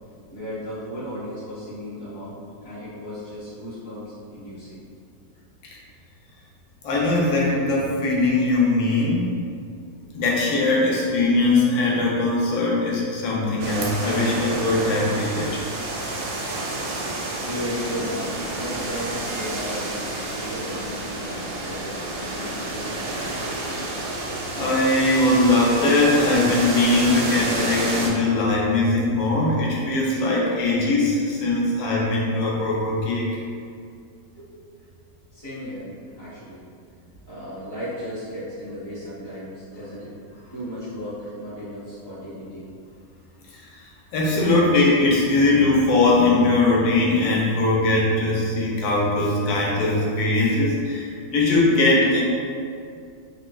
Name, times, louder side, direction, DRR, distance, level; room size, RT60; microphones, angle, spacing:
voice 1, 0.3-4.8 17.4-23.3 34.3-34.5 35.3-35.9 36.2-36.6 37.2-40.1 40.5-42.7, equal, 15° left, -14 dB, 0.9 m, -35 dB
voice 2, 6.8-9.3 10.1-15.6 23.8-24.1 24.5-33.2 44.1-52.2, left 2 dB, 90° left, -4 dB, 1.4 m, -20 dB
sound 1, 13.6-28.1, right 2 dB, 85° right, 1.3 m, -29 dB
4.1 x 2.4 x 2.3 m, 2.3 s
omnidirectional pair, 2.0 m